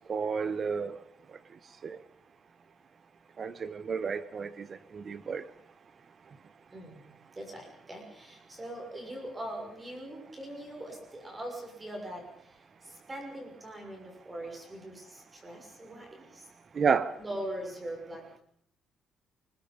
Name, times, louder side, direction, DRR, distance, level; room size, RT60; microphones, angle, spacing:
voice 1, 0.1-1.0 1.8-2.0 3.4-5.4 16.7-17.1, right 6 dB, 35° right, 15 dB, 1.1 m, -31 dB
voice 2, 6.7-7.1 7.3-16.5 17.2-18.4, right 1 dB, 15° right, 2 dB, 6.2 m, -42 dB
29.0 x 21.0 x 5.4 m, 0.66 s
cardioid pair, 170°, 0 cm